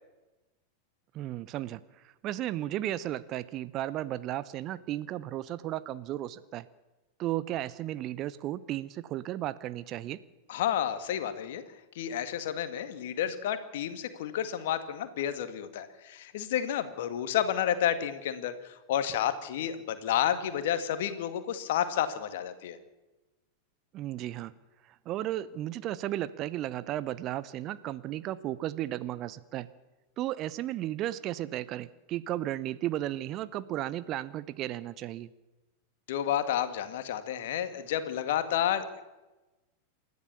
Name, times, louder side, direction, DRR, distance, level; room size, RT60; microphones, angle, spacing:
voice 1, 1.1-6.7 7.2-10.2 23.9-24.5 25.1-29.7 30.2-35.3, right 13 dB, 35° right, 16 dB, 0.8 m, -34 dB
voice 2, 10.5-11.6 12.0-22.8 36.1-39.0, left 10 dB, 55° left, 10 dB, 2.0 m, -30 dB
28.5 x 13.5 x 7.1 m, 1.1 s
figure-of-eight pair, 90°, 0 cm